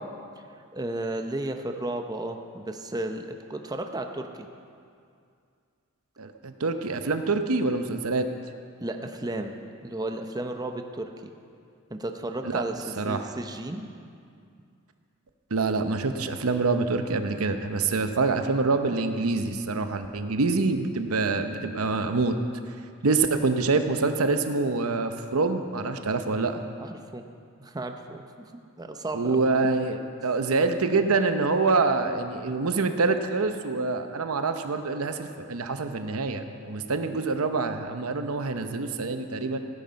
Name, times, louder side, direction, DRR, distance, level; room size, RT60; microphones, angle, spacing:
voice 1, 0.5-4.5 8.8-9.6 9.8-11.3 11.9-13.9 26.8-27.2 27.6-28.2 28.5-29.5, right 1 dB, 20° right, 5 dB, 0.7 m, -34 dB
voice 2, 6.2-8.3 12.4-12.6 13.0-13.3 15.5-22.3 23.0-26.6 29.1-39.6, right 3 dB, 85° right, 8 dB, 0.8 m, -26 dB
16.0 x 9.4 x 5.2 m, 2.4 s
head